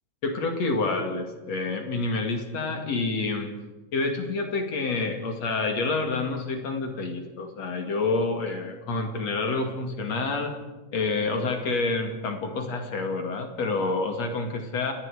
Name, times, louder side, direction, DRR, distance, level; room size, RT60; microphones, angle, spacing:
voice 1, 0.2-3.5 3.9-10.5 10.9-14.9, left 3 dB, 55° left, 4 dB, 3.4 m, -28 dB
30.0 x 19.0 x 5.1 m, 1.2 s
omnidirectional pair, 3.7 m